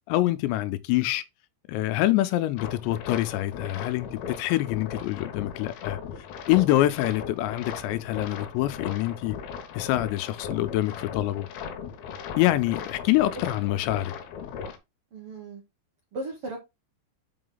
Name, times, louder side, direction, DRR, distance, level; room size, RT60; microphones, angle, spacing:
voice 1, 0.1-1.2 1.7-4.1 4.4-6.0 6.5-9.4 9.8-11.5 12.4-14.1, left 15 dB, 90° left, 2.9 m, -25 dB
sound 1, 2.6-14.8, left 7 dB, 70° left, 2.6 m, -38 dB
voice 2, 15.1-15.6 16.1-16.6, right 2 dB, 80° right, 1.3 m, -36 dB
5.9 x 5.7 x 3.9 m
omnidirectional pair, 5.0 m